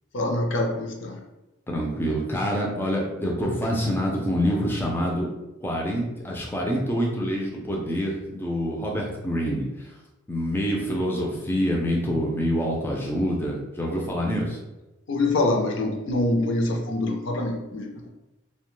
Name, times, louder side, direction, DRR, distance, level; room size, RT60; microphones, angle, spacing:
voice 1, 0.1-1.2 15.1-18.1, left 2 dB, 65° left, 1 dB, 0.5 m, -25 dB
voice 2, 1.7-5.3 5.6-9.9 10.3-14.6, equal, 10° left, -2 dB, 0.4 m, -26 dB
2.7 x 2.2 x 3.1 m, 1.0 s
head